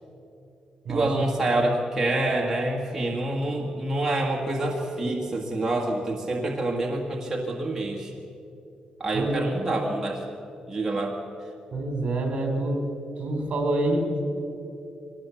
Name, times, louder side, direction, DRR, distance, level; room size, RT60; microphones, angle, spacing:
voice 1, 0.9-8.1 9.0-10.2 10.7-11.2, right 2 dB, 10° right, -2 dB, 1.8 m, -27 dB
voice 2, 11.7-12.8 13.2-14.4, right 1 dB, 50° right, 4 dB, 4.0 m, -26 dB
23.0 x 19.0 x 7.2 m, 2.8 s
wide cardioid pair, 155°, 2 cm